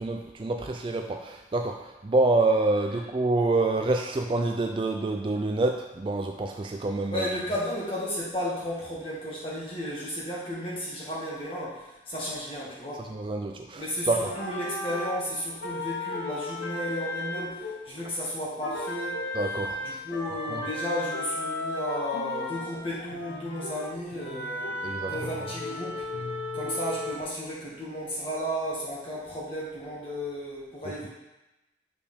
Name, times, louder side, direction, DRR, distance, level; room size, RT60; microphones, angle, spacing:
voice 1, 0.0-7.3 13.0-14.3 19.3-20.0 20.5-20.7 24.8-25.1, right 2 dB, 30° right, 4 dB, 0.3 m, -27 dB
voice 2, 7.1-13.1 13.7-19.2 19.8-24.7 25.1-26.0 26.5-31.1, equal, 30° left, -6 dB, 1.8 m, -33 dB
sound 1, 14.2-18.3 18.6-27.2, left 2 dB, 75° left, 0.8 m, -35 dB
6.7 x 4.9 x 3.5 m, 1.0 s
head